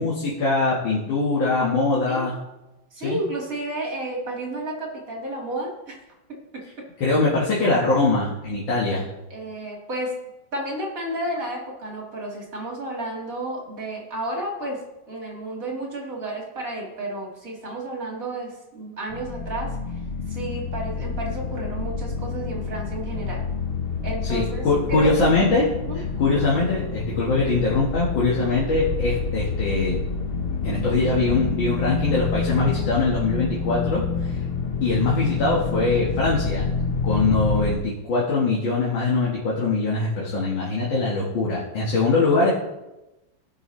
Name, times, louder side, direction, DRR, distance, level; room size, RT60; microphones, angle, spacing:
voice 1, 0.0-2.4 3.0-3.2 7.0-9.1 24.2-30.0 30.6-34.4 34.8-36.6 37.0-42.5, left 3 dB, 80° left, -6 dB, 2.3 m, -22 dB
voice 2, 2.9-6.0 6.3-6.9 9.3-10.2 10.5-19.8 20.3-23.4 24.0-25.2 25.9-26.0 28.5-28.6, right 1 dB, 45° right, -1 dB, 2.4 m, -32 dB
sound 1, 19.1-37.8, left 4 dB, 45° left, 0.8 m, -28 dB
17.5 x 6.0 x 3.2 m, 0.99 s
omnidirectional pair, 2.1 m